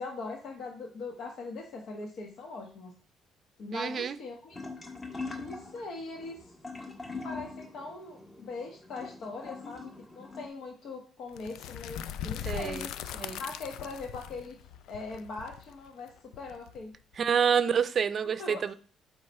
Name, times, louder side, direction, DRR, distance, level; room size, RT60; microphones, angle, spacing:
voice 1, 0.0-3.0 3.6-4.6 5.3-6.5 7.2-12.9 13.4-16.9 18.4-18.7, left 3 dB, 60° left, 1.2 m, -41 dB
voice 2, 3.7-4.2 12.5-12.8 13.1-13.4 17.2-18.7, right 7 dB, 40° right, 0.5 m, -28 dB
sound 1, 4.5-10.5, left 3 dB, 25° left, 1.3 m, -42 dB
sound 2, 11.3-17.2, left 10 dB, 85° left, 0.3 m, -40 dB
7.8 x 3.2 x 4.2 m
cardioid pair, 125°, 0 cm